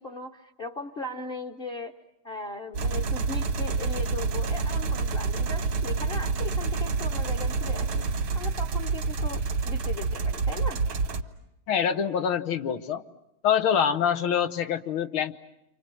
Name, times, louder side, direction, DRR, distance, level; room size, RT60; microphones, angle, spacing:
voice 1, 0.0-2.0 2.2-8.0 8.3-10.8, left 2 dB, 35° left, 6 dB, 1.2 m, -38 dB
sound 1, 2.7-11.2, right 4 dB, 85° right, 2.6 m, -28 dB
voice 2, 11.7-13.0 13.4-15.3, left 8 dB, 80° left, 10 dB, 2.1 m, -25 dB
29.5 x 26.0 x 7.7 m, 0.85 s
omnidirectional pair, 2.2 m